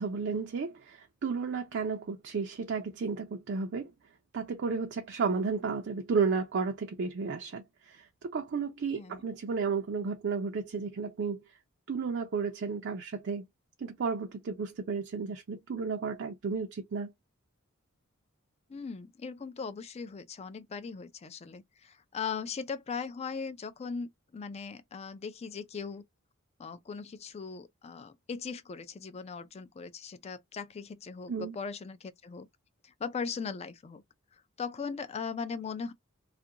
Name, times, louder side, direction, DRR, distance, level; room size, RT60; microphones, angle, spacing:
voice 1, 0.0-3.9 4.3-11.4 11.9-13.4 13.8-17.1 31.3-31.6, right 5 dB, 55° right, 0.4 m, -33 dB
voice 2, 18.7-26.0 26.6-32.5 32.8-34.0 34.6-35.9, left 5 dB, 30° left, 0.4 m, -39 dB
2.5 x 2.1 x 2.7 m
head